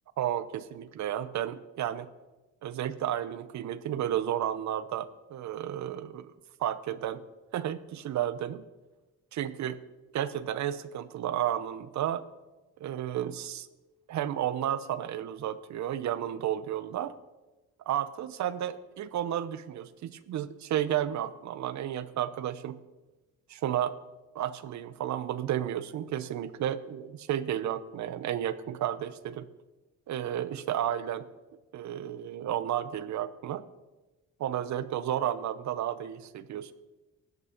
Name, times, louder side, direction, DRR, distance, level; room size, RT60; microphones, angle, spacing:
voice 1, 0.2-2.1 2.6-6.3 6.6-7.2 7.5-8.6 9.4-9.7 10.1-12.2 12.8-13.7 14.1-17.2 17.9-22.8 23.5-24.0 24.3-29.5 30.1-31.3 31.7-33.6 34.4-36.7, right 11 dB, 65° right, 15 dB, 0.8 m, -32 dB
13.5 x 8.6 x 5.1 m, 1.1 s
cardioid pair, 90°, 30 cm